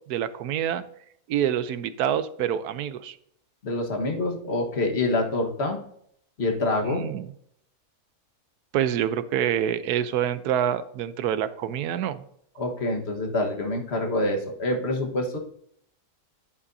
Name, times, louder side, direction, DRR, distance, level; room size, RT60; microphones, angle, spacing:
voice 1, 0.1-0.8 1.3-3.2 6.9-7.3 8.7-12.2, right 10 dB, 85° right, 13 dB, 1.2 m, -26 dB
voice 2, 3.6-5.8 6.4-7.0 12.6-15.4, left 2 dB, 45° left, 2 dB, 1.6 m, -26 dB
11.0 x 8.5 x 2.7 m, 0.67 s
omnidirectional pair, 1.6 m